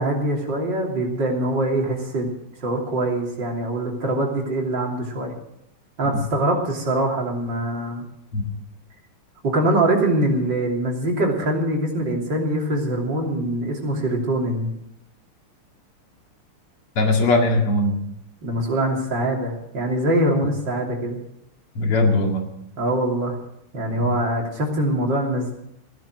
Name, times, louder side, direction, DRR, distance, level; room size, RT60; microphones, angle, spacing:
voice 1, 0.0-2.3 2.6-5.3 6.0-8.1 9.4-14.7 18.4-21.2 22.8-23.4 23.7-25.5, right 1 dB, 55° right, 0 dB, 3.7 m, -23 dB
voice 2, 17.0-18.0 21.8-22.5 24.0-24.1, left 2 dB, 80° left, 2 dB, 3.1 m, -20 dB
16.0 x 11.0 x 6.3 m, 0.78 s
omnidirectional pair, 2.4 m